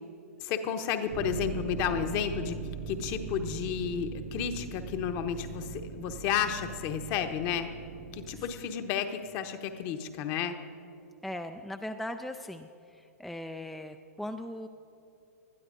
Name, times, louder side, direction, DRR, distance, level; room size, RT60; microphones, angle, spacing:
voice 1, 0.4-7.7 8.1-10.6, left 8 dB, 40° left, 7 dB, 1.0 m, -32 dB
sound 1, 1.1-8.5, right 5 dB, 50° right, 1.1 m, -40 dB
voice 2, 11.2-14.7, left 1 dB, ahead, 7 dB, 0.3 m, -39 dB
20.0 x 12.5 x 2.6 m, 2.6 s
hypercardioid pair, 110°, 8 cm